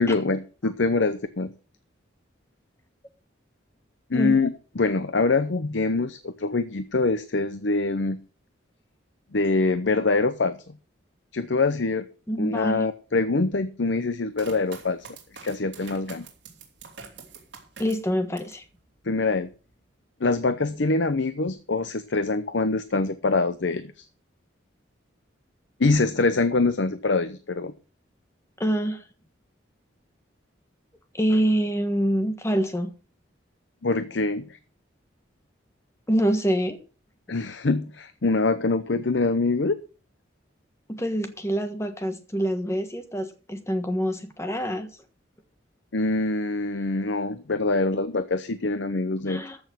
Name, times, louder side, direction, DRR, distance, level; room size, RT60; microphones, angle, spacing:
voice 1, 0.0-1.5 4.1-8.2 9.3-10.6 11.3-12.1 12.4-15.1 15.4-16.3 19.1-19.5 20.2-24.0 25.8-27.7 33.8-34.4 37.3-39.8 45.9-49.4, left 3 dB, 70° left, 11 dB, 0.8 m, -24 dB
voice 2, 12.3-12.9 17.8-18.6 28.6-29.0 31.1-32.9 36.1-36.8 40.9-44.9 49.3-49.6, equal, 15° left, 7 dB, 1.4 m, -25 dB
sound 1, 14.3-18.6 19.1-19.7, right 5 dB, 65° right, 3.2 m, -45 dB
14.0 x 6.3 x 6.1 m, 0.36 s
head